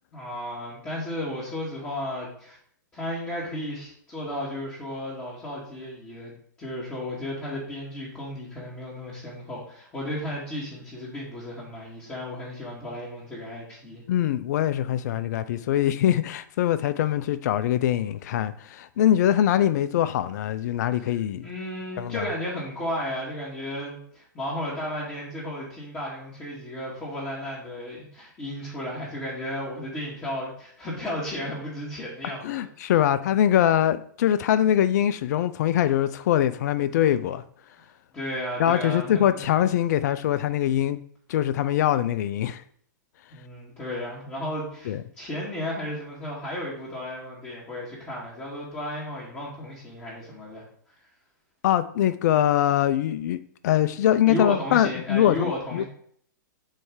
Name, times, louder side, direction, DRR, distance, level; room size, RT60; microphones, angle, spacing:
voice 1, 0.1-2.6 2.9-6.3 6.6-14.0 21.0-21.2 21.4-32.9 38.1-39.4 43.3-50.6 54.3-55.8, left 1 dB, 20° left, 2.3 m, -34 dB
voice 2, 14.1-21.5 22.0-22.2 32.4-37.4 38.6-41.0 41.3-42.6 44.9-45.0 51.6-55.8, left 11 dB, 60° left, 0.5 m, -23 dB
7.6 x 3.2 x 4.8 m
hypercardioid pair, 130°, 10 cm